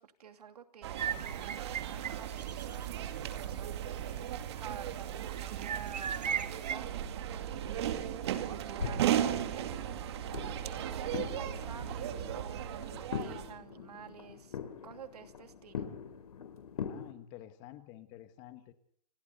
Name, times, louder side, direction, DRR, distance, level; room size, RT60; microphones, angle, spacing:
voice 1, 0.0-8.2 8.6-14.6 14.8-15.9, right 8 dB, 70° right, 8 dB, 2.9 m, -50 dB
sound 1, 0.8-13.6, right 10 dB, 40° right, 2.1 m, -36 dB
sound 2, 1.0-2.9 3.2-3.3 3.8-4.7 5.3-6.8, right 7 dB, 90° right, 1.6 m, -38 dB
sound 3, 8.8-17.1, left 7 dB, 65° left, 4.4 m, -43 dB
voice 2, 16.7-18.7, left 13 dB, 20° left, 10 dB, 1.4 m, -50 dB
28.5 x 22.5 x 4.2 m, 0.62 s
hypercardioid pair, 165°, 21 cm